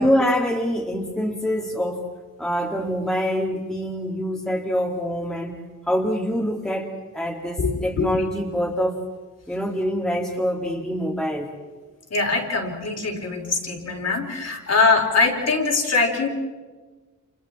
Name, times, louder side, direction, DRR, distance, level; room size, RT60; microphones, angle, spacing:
voice 1, 0.0-2.0 2.4-5.6 5.9-6.9 7.1-9.0 9.5-11.5, equal, ahead, -1 dB, 2.4 m, -25 dB
voice 2, 7.6-8.2 12.1-16.3, left 4 dB, 55° left, 1 dB, 3.7 m, -22 dB
29.5 x 29.0 x 4.4 m, 1.3 s
wide cardioid pair, 180°, 31 cm